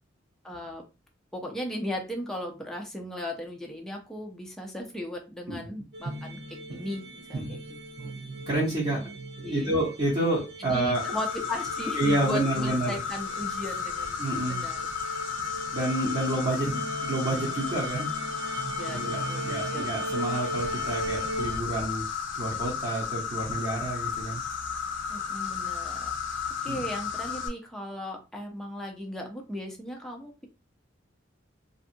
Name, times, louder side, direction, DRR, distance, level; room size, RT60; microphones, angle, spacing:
voice 1, 0.4-0.8 1.3-7.6 8.0-8.1 9.4-9.7 10.6-14.2 14.5-14.8 18.8-19.9 25.1-26.2 26.6-30.5, left 1 dB, 5° left, 0 dB, 0.5 m, -37 dB
sound 1, 5.9-21.6, right 2 dB, 65° right, 0.7 m, -38 dB
voice 2, 8.5-9.0 9.4-11.0 11.9-13.0 14.2-14.6 15.0-15.1 15.7-18.1 18.9-22.0 22.3-24.4 26.7-26.8, right 1 dB, 30° right, -7 dB, 0.8 m, -29 dB
Insect, 10.9-27.5, left 6 dB, 70° left, 0.5 m, -33 dB
2.7 x 2.4 x 2.5 m, 0.29 s
head